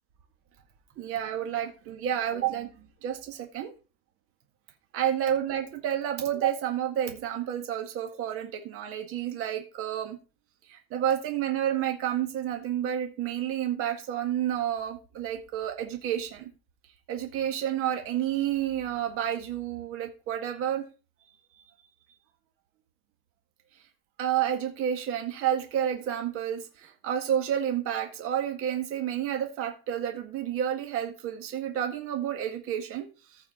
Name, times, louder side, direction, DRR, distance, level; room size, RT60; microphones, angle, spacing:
voice 1, 1.0-3.7 4.9-10.2 10.7-16.5 17.1-20.8 24.2-33.1, right 10 dB, 45° right, 4 dB, 1.8 m, -30 dB
14.0 x 4.7 x 4.4 m, 0.33 s
cardioid pair, 150°, 30 cm